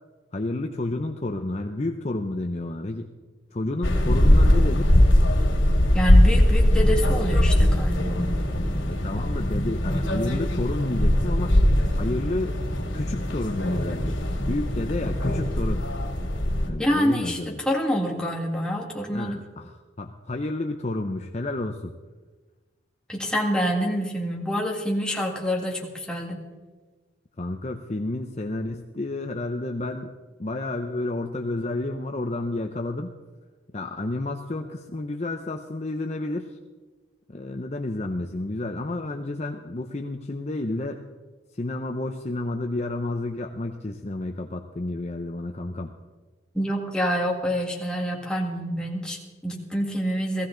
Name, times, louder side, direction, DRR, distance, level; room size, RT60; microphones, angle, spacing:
voice 1, 0.3-3.1 3.5-4.9 8.9-11.5 12.0-12.6 12.9-15.9 16.7-17.6 19.1-21.9 27.4-30.1 30.4-33.1 33.7-36.6 37.3-41.0 41.5-45.9, left 2 dB, 35° left, 4 dB, 0.7 m, -30 dB
sound 1, 3.8-16.7, left 1 dB, 85° left, 2.5 m, -21 dB
voice 2, 5.9-8.2 16.8-19.4 23.1-26.4 46.5-50.5, equal, 5° left, -1 dB, 1.9 m, -27 dB
17.5 x 15.5 x 3.9 m, 1.3 s
head